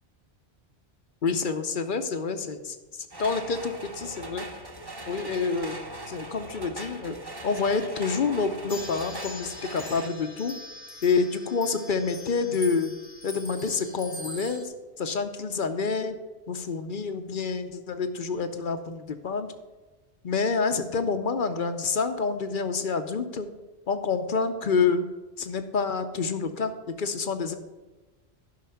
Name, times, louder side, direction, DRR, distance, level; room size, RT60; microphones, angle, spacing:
voice 1, 1.2-4.5 5.1-5.8 6.1-7.2 7.4-10.6 11.0-12.9 13.2-16.2 16.5-19.5 20.2-23.5 23.9-25.0 25.4-26.7 27.0-27.5, left 4 dB, 55° left, 9 dB, 0.8 m, -28 dB
sound 1, 3.1-10.1, right 1 dB, 20° right, 1.0 m, -40 dB
sound 2, 8.7-14.6, left 1 dB, 25° left, 1.0 m, -42 dB
11.5 x 5.7 x 5.7 m, 1.2 s
omnidirectional pair, 1.1 m